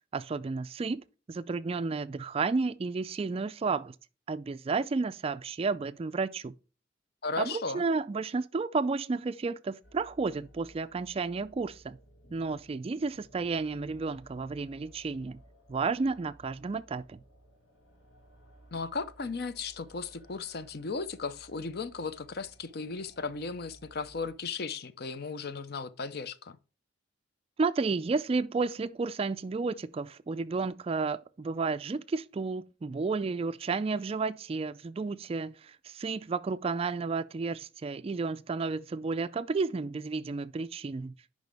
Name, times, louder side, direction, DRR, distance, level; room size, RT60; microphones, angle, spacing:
voice 1, 0.1-3.9 4.3-6.5 7.4-12.0 12.3-15.4 15.7-17.2 27.6-41.1, right 4 dB, 30° right, 0.3 m, -32 dB
voice 2, 7.2-7.8 18.7-26.6, left 4 dB, 55° left, 0.6 m, -36 dB
sound 1, 9.8-24.4, right 1 dB, 70° left, 1.9 m, -58 dB
10.5 x 5.2 x 3.4 m
head